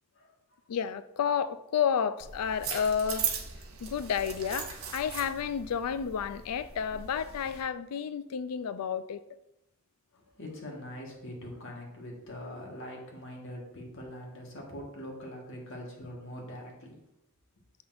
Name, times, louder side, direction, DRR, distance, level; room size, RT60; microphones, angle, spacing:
voice 1, 0.7-3.3 3.8-9.2, left 7 dB, 90° left, 0.4 m, -31 dB
sound 1, 2.2-7.6, right 7 dB, 70° right, 1.0 m, -38 dB
voice 2, 10.1-17.0, left 1 dB, 60° left, 1.6 m, -43 dB
7.0 x 5.7 x 2.6 m
head